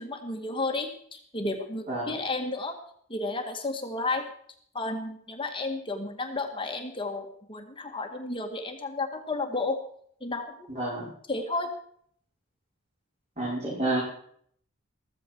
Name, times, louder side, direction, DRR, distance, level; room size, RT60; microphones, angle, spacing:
voice 1, 0.0-2.8 3.1-4.3 4.7-9.8 10.2-10.8 11.3-11.7, left 2 dB, 25° left, 3 dB, 1.9 m, -32 dB
voice 2, 10.7-11.1 13.4-14.0, right 2 dB, 30° right, -8 dB, 5.8 m, -29 dB
15.0 x 14.5 x 4.7 m, 0.63 s
head